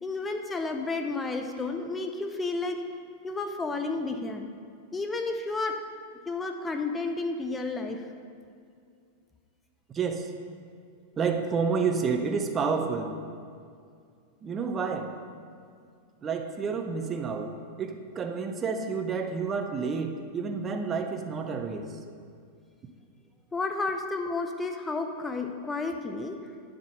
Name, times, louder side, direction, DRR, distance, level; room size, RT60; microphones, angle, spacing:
voice 1, 0.0-2.8 3.2-4.5 4.9-5.8 6.3-8.0 23.5-26.4, left 3 dB, 15° left, 5 dB, 0.6 m, -31 dB
voice 2, 9.9-10.3 11.2-13.1 14.4-15.1 16.2-22.0, right 5 dB, 25° right, 5 dB, 0.7 m, -30 dB
11.0 x 3.8 x 7.5 m, 2.3 s
figure-of-eight pair, 95°, 0 cm